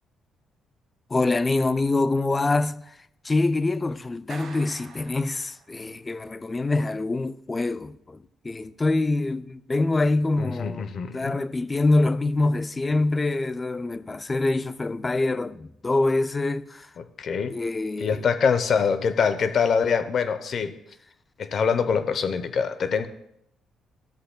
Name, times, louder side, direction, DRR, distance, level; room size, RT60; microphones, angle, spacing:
voice 1, 1.1-2.8 3.2-8.2 8.4-10.9 11.1-16.9 17.5-18.2, left 2 dB, 25° left, 0.4 m, -25 dB
Clapping, 4.3-5.9, right 5 dB, 70° right, 1.9 m, -45 dB
voice 2, 10.4-11.4 17.0-17.6 18.0-20.7 21.4-23.1, left 6 dB, 55° left, 0.7 m, -24 dB
13.0 x 7.6 x 2.2 m
cardioid pair, 90°, 0 cm